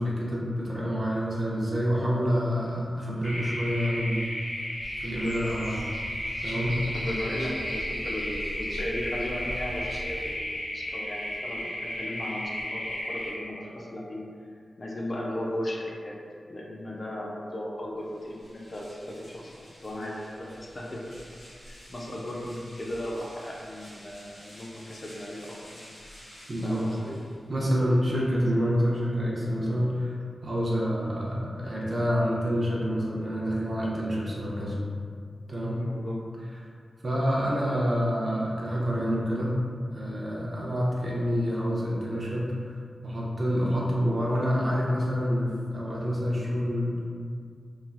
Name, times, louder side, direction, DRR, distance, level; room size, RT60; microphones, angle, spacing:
voice 1, 0.0-4.2 5.0-5.9 6.4-6.8 26.5-26.9 27.5-30.2 30.4-34.8 35.5-35.8 37.0-42.7 43.0-47.1, equal, 45° right, -5 dB, 0.6 m, -27 dB
sound 1, 3.2-13.3, left 1 dB, 65° left, 0.9 m, -34 dB
sound 2, 4.8-10.4, right 1 dB, 80° right, 1.0 m, -41 dB
voice 2, 6.9-14.2 14.8-16.1 16.5-21.0 21.7-25.8 26.6-27.2 35.8-36.2, left 1 dB, 40° left, -3 dB, 0.4 m, -36 dB
sound 3, 18.0-27.6, equal, 85° left, 1.3 m, -50 dB
3.1 x 2.3 x 2.4 m, 2.2 s
wide cardioid pair, 95°, 0 cm